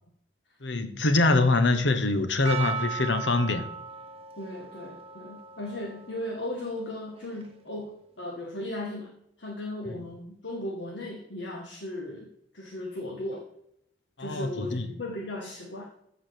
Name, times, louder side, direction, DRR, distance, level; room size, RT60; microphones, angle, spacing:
voice 1, 0.6-3.7 14.2-14.9, left 2 dB, 85° left, 1.2 m, -24 dB
Percussion, 2.4-7.7, right 6 dB, 35° right, 0.9 m, -38 dB
voice 2, 4.4-12.3 12.5-13.5 14.2-15.8, left 1 dB, 70° left, 1.7 m, -36 dB
13.5 x 4.8 x 6.8 m
head